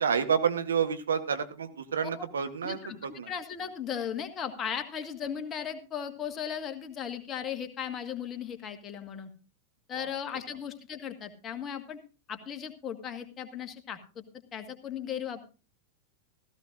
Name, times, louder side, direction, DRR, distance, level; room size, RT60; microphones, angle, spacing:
voice 1, 0.0-3.3 9.9-10.2, right 7 dB, 70° right, 9 dB, 1.1 m, -29 dB
voice 2, 2.6-9.3 9.9-12.0 12.3-14.2 14.5-15.5, left 8 dB, 30° left, 8 dB, 1.5 m, -37 dB
16.0 x 15.0 x 2.5 m, 0.33 s
figure-of-eight pair, 90°, 0 cm